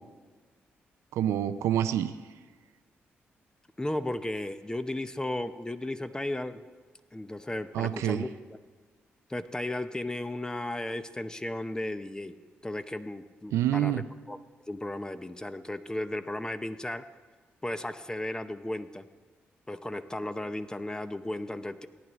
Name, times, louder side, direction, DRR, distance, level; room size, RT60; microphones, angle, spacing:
voice 1, 1.1-2.1 7.7-8.2 13.5-14.0, right 11 dB, 85° right, 11 dB, 0.4 m, -27 dB
voice 2, 3.8-6.6 7.1-8.6 9.3-12.3 12.6-14.4 14.7-17.0 17.6-19.1 19.7-21.9, left 1 dB, 15° left, 11 dB, 0.7 m, -35 dB
18.5 x 9.7 x 3.1 m, 1.5 s
supercardioid pair, 50°, 5 cm